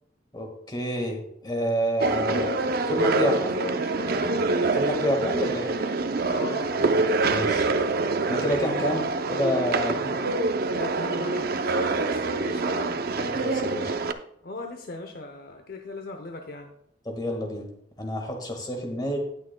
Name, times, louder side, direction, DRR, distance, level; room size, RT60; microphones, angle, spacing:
voice 1, 0.3-3.5 4.7-5.7 7.3-7.7 8.3-9.0 9.3-10.0 13.2-14.0 17.0-17.6 18.0-19.2, equal, 20° left, 2 dB, 1.6 m, -28 dB
sound 1, 2.0-14.1, right 3 dB, 55° right, 0.5 m, -25 dB
voice 2, 3.0-4.4 6.3-7.0 9.9-13.0 14.4-16.7, left 2 dB, 55° left, 5 dB, 0.7 m, -39 dB
18.0 x 6.3 x 2.2 m, 0.73 s
head